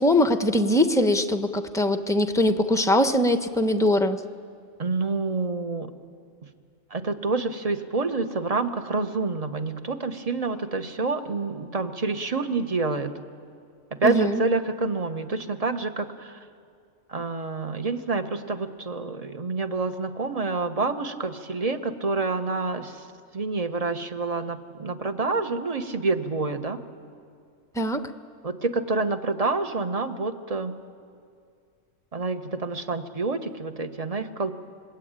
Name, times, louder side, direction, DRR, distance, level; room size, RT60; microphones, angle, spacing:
voice 1, 0.0-4.2 14.0-14.4 27.8-28.0, left 1 dB, 5° left, 8 dB, 0.7 m, -22 dB
voice 2, 4.8-5.9 6.9-13.1 13.9-16.4 17.1-23.0 23.3-26.8 28.4-30.7 32.1-34.5, right 3 dB, 30° right, 8 dB, 1.1 m, -28 dB
25.5 x 21.0 x 8.9 m, 2.2 s
omnidirectional pair, 1.4 m